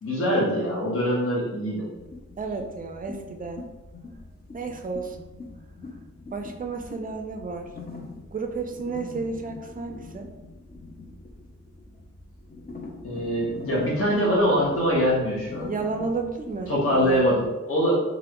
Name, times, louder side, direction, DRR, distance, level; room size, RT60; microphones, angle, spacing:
voice 1, 0.0-1.9 13.0-15.7 16.7-18.0, equal, 50° left, -6 dB, 1.0 m, -23 dB
sound 1, 1.9-17.5, left 3 dB, 35° left, 0.5 m, -42 dB
voice 2, 2.4-3.6 4.5-5.3 6.3-7.7 8.3-10.3 15.6-17.2, right 4 dB, 30° right, 4 dB, 0.4 m, -32 dB
3.1 x 2.5 x 2.9 m, 1.1 s
wide cardioid pair, 60°, 29 cm